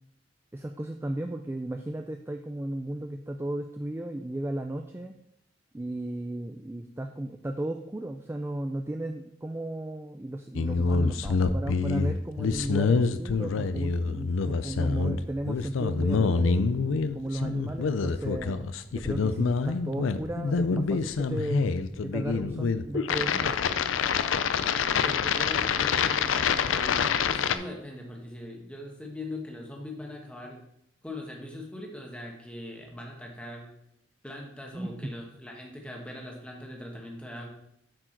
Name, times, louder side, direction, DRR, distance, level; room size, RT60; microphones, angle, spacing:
voice 1, 0.5-5.1 5.7-16.6 17.1-21.7 22.0-23.6 34.7-35.1, right 1 dB, 10° right, 5 dB, 0.3 m, -35 dB
sound 1, 10.5-27.6, left 5 dB, 80° left, 0.4 m, -26 dB
voice 2, 25.0-30.6 31.0-33.7 34.2-37.5, left 1 dB, 5° left, 0 dB, 1.2 m, -41 dB
7.5 x 4.8 x 4.5 m, 0.77 s
head